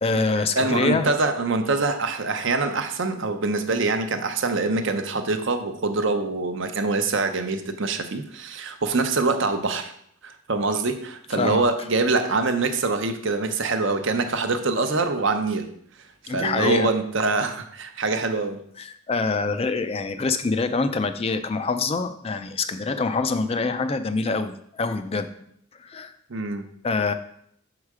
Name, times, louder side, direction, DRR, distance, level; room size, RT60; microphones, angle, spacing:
voice 1, 0.0-1.1 11.3-11.7 16.3-16.9 18.8-25.3 25.8-26.1 26.8-27.1, left 4 dB, 25° left, 9 dB, 0.4 m, -25 dB
voice 2, 0.6-9.9 10.2-15.7 16.3-18.6 26.3-26.7, right 3 dB, 55° right, 7 dB, 0.7 m, -24 dB
6.4 x 4.8 x 4.8 m, 0.69 s
head